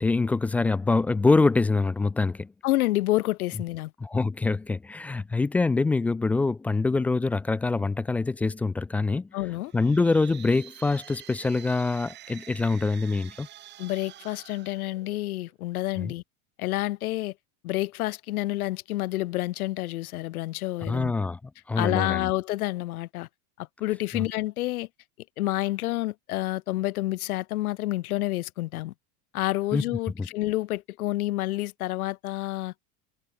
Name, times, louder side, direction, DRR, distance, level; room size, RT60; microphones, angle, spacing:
voice 1, 0.0-2.5 4.0-9.3 9.7-13.5 16.0-16.1 20.9-21.4 21.7-22.3 24.1-24.3 29.7-29.8 30.2-30.3, left 3 dB, 5° left, 0.4 m, -25 dB
voice 2, 2.6-3.9 9.3-9.7 13.8-16.2 16.6-17.3 17.6-21.1 21.8-23.3 23.6-24.9 25.4-28.9 29.3-32.7, left 17 dB, 75° left, 2.6 m, -29 dB
sound 1, 9.6-15.5, right 13 dB, 25° right, 1.8 m, -48 dB
supercardioid pair, 165°, 44 cm